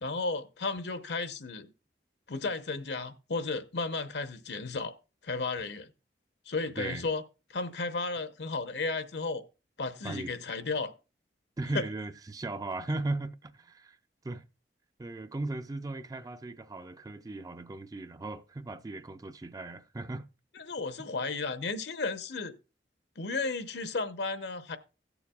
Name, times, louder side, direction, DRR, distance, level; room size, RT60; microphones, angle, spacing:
voice 1, 0.0-1.7 2.3-4.9 5.2-5.9 6.5-7.2 7.5-9.4 9.8-10.9 11.7-11.8 20.6-22.5 23.2-24.8, left 3 dB, 70° left, 0.8 m, -33 dB
voice 2, 6.8-7.1 10.0-10.3 11.6-14.0 14.2-14.5 15.0-20.3, right 2 dB, 20° right, 0.4 m, -37 dB
17.0 x 7.0 x 2.3 m
head